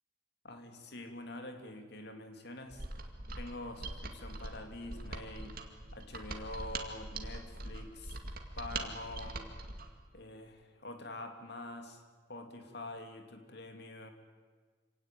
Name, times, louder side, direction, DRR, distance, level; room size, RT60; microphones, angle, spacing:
voice 1, 0.4-2.9 3.4-5.6 5.9-8.2 8.6-9.5 10.1-12.0 12.3-14.1, left 2 dB, 60° left, 5 dB, 2.7 m, -46 dB
Mechanisms, 2.7-9.9, right 2 dB, 50° right, 2.3 m, -42 dB
26.0 x 18.0 x 9.0 m, 1.5 s
head